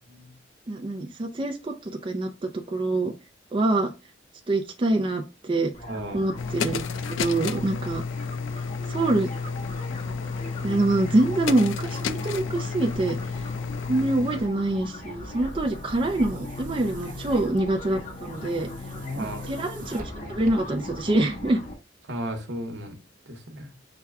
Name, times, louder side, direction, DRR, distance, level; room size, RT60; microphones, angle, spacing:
voice 1, 0.1-0.4 5.8-6.3 19.0-19.5 22.1-22.9 23.3-23.7, right 1 dB, 75° right, 4 dB, 1.0 m, -35 dB
voice 2, 0.7-3.1 3.5-3.9 4.5-5.7 6.1-6.8 7.2-8.0 8.9-9.3 10.6-13.2 13.9-18.7 19.2-21.6, right 2 dB, 25° right, 4 dB, 0.4 m, -25 dB
sound 1, 5.7-21.7, left 1 dB, 45° left, 1.3 m, -40 dB
sound 2, 6.4-14.5, left 5 dB, 85° left, 0.4 m, -31 dB
Boom, 15.2-21.0, left 1 dB, 45° right, 0.8 m, -41 dB
5.8 x 2.2 x 3.4 m, 0.29 s
head